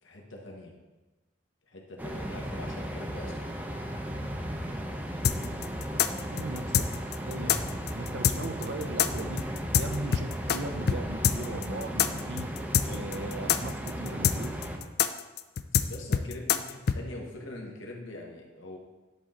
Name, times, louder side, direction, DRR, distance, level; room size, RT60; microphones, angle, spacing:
voice 1, 0.0-0.7 1.7-3.5 15.9-18.8, left 1 dB, 85° left, 0 dB, 1.4 m, -43 dB
sound 1, 2.0-14.8, equal, 10° right, 0.5 m, -36 dB
sound 2, 5.2-10.6 10.9-11.0 11.2-17.0, left 8 dB, 50° left, 0.3 m, -25 dB
voice 2, 6.3-6.9 7.3-7.6 7.9-9.4 9.7-12.5 12.8-14.6, right 2 dB, 70° right, 8 dB, 0.6 m, -38 dB
10.0 x 4.3 x 3.7 m, 1.1 s
head